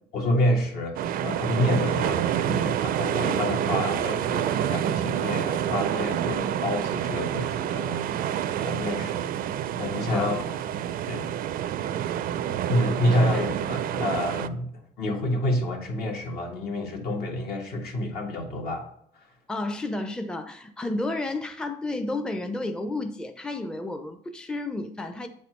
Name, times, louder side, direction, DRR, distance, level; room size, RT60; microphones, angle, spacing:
voice 1, 0.1-8.1 8.6-9.3 9.8-10.4 11.1-11.3 12.7-14.7 15.0-18.9 19.1-19.3, left 1 dB, 65° left, 1 dB, 1.8 m, -28 dB
sound 1, 0.9-14.5, right 10 dB, 60° right, 0.4 m, -28 dB
voice 2, 10.1-10.6 12.9-13.4 19.5-25.3, left 2 dB, 5° left, 7 dB, 0.5 m, -32 dB
7.9 x 4.3 x 4.4 m, 0.71 s
cardioid pair, 110°, 17 cm